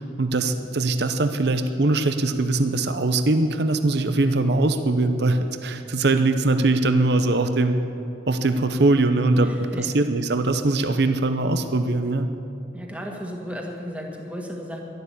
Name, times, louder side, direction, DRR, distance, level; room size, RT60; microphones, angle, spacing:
voice 1, 0.0-7.8 8.3-9.5 9.8-12.3, right 2 dB, 60° right, 8 dB, 0.7 m, -21 dB
voice 2, 9.4-10.0 12.7-14.8, equal, 5° right, 0 dB, 1.8 m, -34 dB
12.0 x 12.0 x 8.3 m, 2.8 s
head